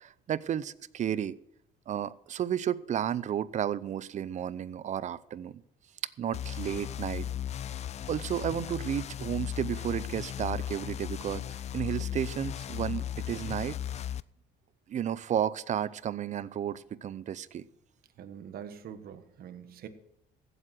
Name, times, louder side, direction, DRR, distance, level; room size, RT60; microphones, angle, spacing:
voice 1, 0.0-1.4 1.9-5.6 6.2-7.2 8.1-13.8 14.9-17.6, right 9 dB, 45° right, 19 dB, 0.6 m, -32 dB
sound 1, 6.3-14.2, left 10 dB, 40° left, 0.4 m, -36 dB
voice 2, 18.2-19.9, right 8 dB, 60° right, 10 dB, 1.4 m, -44 dB
15.0 x 8.0 x 6.0 m, 0.80 s
cardioid pair, 110°, 17 cm